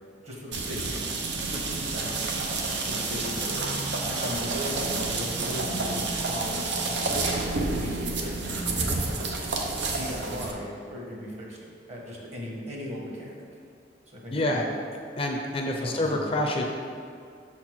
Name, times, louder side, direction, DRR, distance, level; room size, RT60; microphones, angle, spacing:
voice 1, 0.2-3.6 4.1-9.4 9.9-13.3 14.1-14.7 15.6-16.4, equal, 40° right, -3 dB, 1.4 m, -38 dB
sound 1, 0.5-10.5, right 3 dB, 75° right, 0.8 m, -29 dB
voice 2, 14.3-14.7 15.2-16.6, left 1 dB, 30° left, 2 dB, 0.6 m, -27 dB
6.2 x 4.4 x 6.2 m, 2.4 s
head